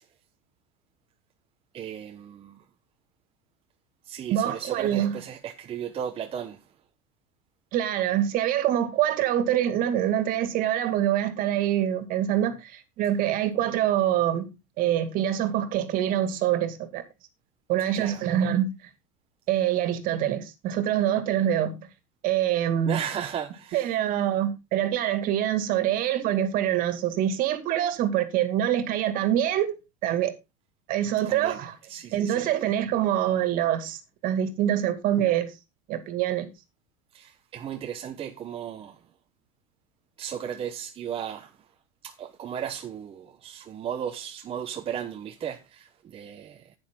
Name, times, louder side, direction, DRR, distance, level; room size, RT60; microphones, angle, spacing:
voice 1, 1.7-2.6 4.1-6.6 17.9-18.2 22.9-23.9 31.3-31.6 31.9-32.5 37.1-39.0 40.2-41.5 42.0-46.7, right 9 dB, 30° right, 1.1 m, -35 dB
voice 2, 4.3-5.2 7.7-14.5 14.8-17.0 17.7-18.7 19.5-21.9 22.2-23.0 23.7-29.8 30.0-30.3 30.9-31.7 32.1-35.5 35.9-36.5, right 11 dB, 50° right, 2.2 m, -25 dB
11.0 x 9.7 x 3.7 m
supercardioid pair, 110°, 18 cm